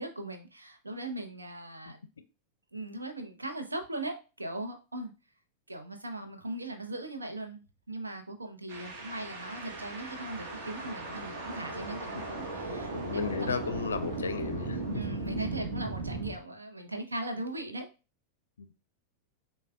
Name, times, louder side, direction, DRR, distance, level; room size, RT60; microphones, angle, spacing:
voice 1, 0.0-2.0 2.7-5.1 5.7-13.5 14.9-17.9, right 2 dB, 80° right, 6 dB, 0.6 m, -39 dB
sound 1, 8.7-16.4, right 2 dB, 50° right, 0.9 m, -37 dB
voice 2, 12.9-14.8 18.6-18.7, left 5 dB, 70° left, 10 dB, 0.4 m, -34 dB
6.5 x 2.2 x 2.2 m, 0.32 s
figure-of-eight pair, 90°, 0 cm